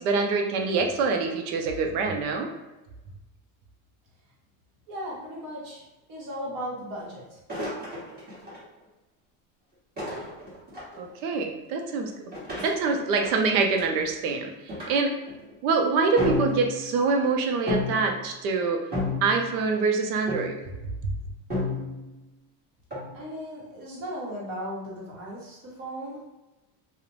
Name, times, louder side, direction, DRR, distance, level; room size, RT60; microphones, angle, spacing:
voice 1, 0.0-2.5 11.0-12.1 12.6-14.5 14.9-15.2 15.6-18.8 19.2-20.6, right 4 dB, 80° right, 3 dB, 0.6 m, -25 dB
voice 2, 4.9-5.8 6.1-7.4 23.1-26.2, equal, 50° right, -4 dB, 1.1 m, -36 dB
sound 1, 7.5-8.6 10.0-11.0 12.3-14.0 14.7-14.9 15.3-15.5 16.2-16.9 17.7-18.2 18.9-19.6 20.3-20.7 21.5-22.1 22.9-23.1, left 2 dB, 20° right, 1.1 m, -31 dB
2.4 x 2.1 x 3.0 m, 1.0 s
supercardioid pair, 120°, 45 cm